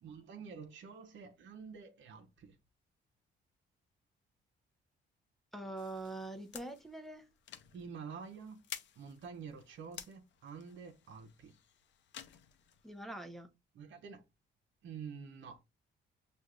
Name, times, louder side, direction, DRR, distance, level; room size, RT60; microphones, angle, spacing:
voice 1, 0.0-2.6 7.7-8.6 9.0-11.5 13.7-14.2 14.8-15.6, right 6 dB, 70° right, 0.9 m, -48 dB
voice 2, 5.5-7.3 12.8-13.5, right 2 dB, ahead, 0.7 m, -44 dB
sound 1, 5.8-13.1, left 9 dB, 65° left, 0.6 m, -53 dB
6.3 x 2.5 x 2.4 m
cardioid pair, 90°, 20 cm